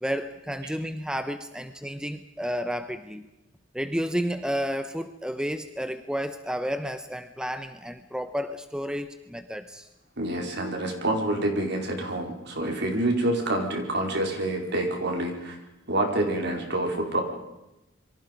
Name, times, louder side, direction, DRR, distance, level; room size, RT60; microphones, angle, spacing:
voice 1, 0.0-3.3 3.7-9.9, equal, 5° right, 9 dB, 0.8 m, -31 dB
voice 2, 10.2-15.6 15.9-17.2, right 1 dB, 60° right, 3 dB, 4.6 m, -27 dB
28.0 x 23.5 x 5.3 m, 0.93 s
head